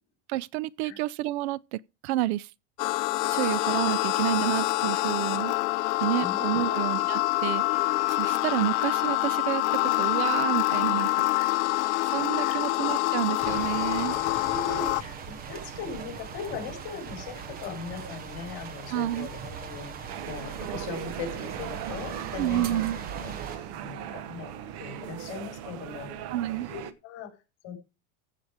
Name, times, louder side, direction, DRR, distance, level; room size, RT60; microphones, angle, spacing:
voice 1, 0.3-2.5 3.3-5.5 6.0-11.5 12.0-14.2 18.9-19.3 22.4-23.0 26.3-26.7, right 15 dB, 70° right, 0.5 m, -30 dB
sound 1, 2.8-15.0, left 20 dB, 80° left, 0.6 m, -26 dB
sound 2, 13.4-23.6, right 6 dB, 25° right, 1.1 m, -40 dB
voice 2, 14.3-24.5 24.8-26.1 26.7-27.3 27.6-27.8, left 5 dB, 45° left, 4.1 m, -39 dB
sound 3, 20.1-26.9, right 10 dB, 45° right, 1.0 m, -38 dB
15.5 x 5.8 x 4.9 m
supercardioid pair, 160°, 34 cm